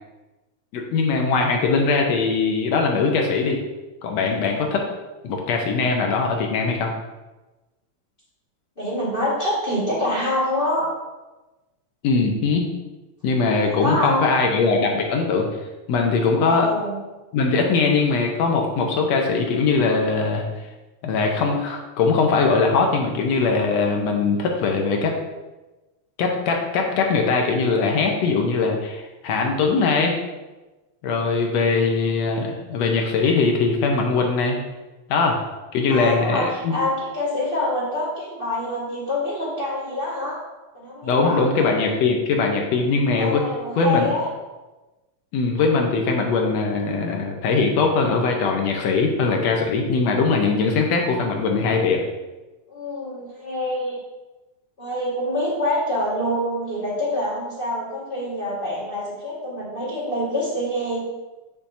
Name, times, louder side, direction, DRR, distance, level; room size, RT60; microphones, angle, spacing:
voice 1, 0.7-3.6 4.0-4.8 5.2-6.9 12.0-12.7 13.2-15.5 15.9-16.7 17.3-20.5 21.0-25.2 26.2-30.2 31.0-34.6 35.1-35.4 35.7-36.8 41.0-43.5 43.8-44.1 45.3-52.0, left 4 dB, 70° left, 2 dB, 2.0 m, -21 dB
voice 2, 8.8-10.9 13.6-14.3 16.4-17.0 35.9-40.4 40.7-41.6 43.2-44.3 52.7-54.0 54.8-61.1, left 1 dB, 25° left, -7 dB, 1.5 m, -26 dB
8.9 x 6.8 x 2.8 m, 1.1 s
omnidirectional pair, 3.4 m